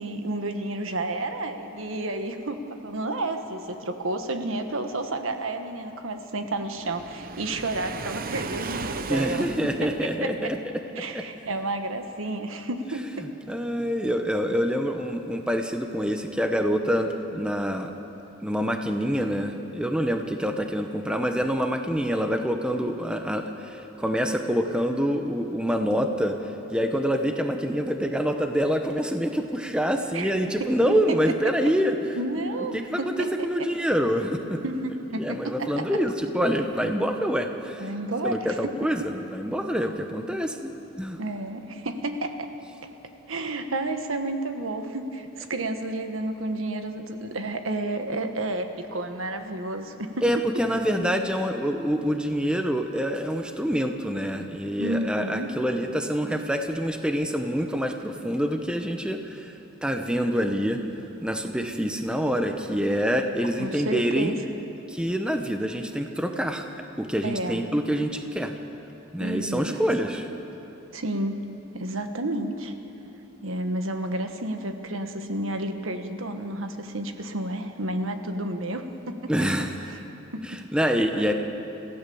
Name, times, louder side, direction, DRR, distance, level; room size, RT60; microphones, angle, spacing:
voice 1, 0.0-9.5 9.8-10.5 10.9-13.3 30.1-30.3 30.6-31.7 32.1-33.7 34.6-35.9 37.8-38.9 41.2-42.5 43.3-50.4 50.7-51.2 54.8-55.5 63.5-64.4 67.2-67.7 69.2-70.1 70.9-71.5 71.7-72.7 73.4-79.3 79.6-80.0 80.3-80.6 81.1-81.3, right 2 dB, 75° right, 6 dB, 1.5 m, -31 dB
Waves surf, 6.8-10.3, right 4 dB, 45° right, 0.8 m, -36 dB
voice 2, 9.1-10.6 13.5-17.9 18.4-32.2 32.7-33.1 33.4-34.6 35.2-37.9 38.2-40.7 41.0-41.2 50.2-59.5 59.8-60.8 61.2-64.4 64.9-66.6 67.0-68.5 69.1-70.3 79.3-79.7 80.5-81.3, equal, 5° right, 5 dB, 0.9 m, -26 dB
27.0 x 15.5 x 7.1 m, 3.0 s
head